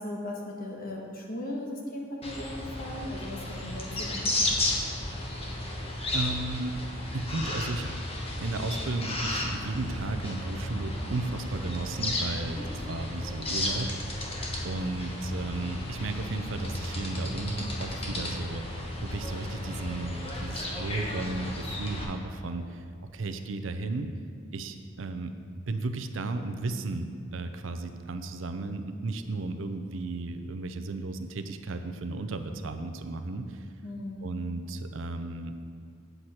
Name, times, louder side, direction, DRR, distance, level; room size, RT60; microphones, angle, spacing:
voice 1, 0.0-4.3 12.5-12.7 33.8-34.3, left 1 dB, 45° left, -1 dB, 1.3 m, -37 dB
sound 1, 2.2-22.0, left 1 dB, 30° left, 1.1 m, -33 dB
voice 2, 6.1-6.8 7.1-8.0 8.4-12.6 12.9-14.3 14.6-18.6 19.0-24.1 24.5-25.3 25.7-33.7 34.2-35.7, right 2 dB, 70° right, 8 dB, 0.6 m, -34 dB
7.9 x 7.9 x 4.3 m, 2.3 s
head